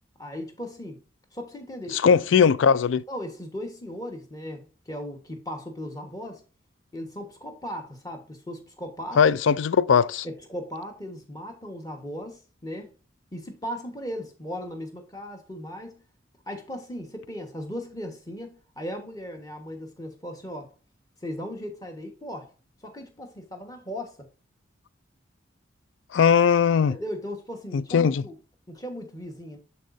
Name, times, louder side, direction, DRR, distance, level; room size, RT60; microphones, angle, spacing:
voice 1, 0.2-1.0 1.3-2.1 3.1-6.4 6.9-9.3 10.2-12.9 13.3-15.9 16.5-20.7 21.2-22.5 22.8-24.3 26.9-28.4 28.7-29.6, equal, 20° left, 1.3 m, -37 dB
voice 2, 1.9-3.0 9.2-10.3 26.1-27.0 27.7-28.2, left 6 dB, 75° left, 0.4 m, -19 dB
12.0 x 4.1 x 2.6 m
head